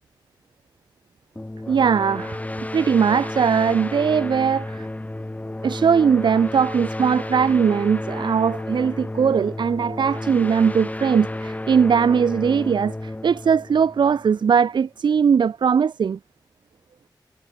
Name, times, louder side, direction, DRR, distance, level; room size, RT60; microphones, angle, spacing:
sound 1, 1.4-14.7, left 1 dB, 20° left, 1.7 m, -32 dB
voice 1, 1.7-2.4 2.7-4.9 5.6-16.2, right 6 dB, 70° right, 0.5 m, -20 dB
wide cardioid pair, 70°, 8 cm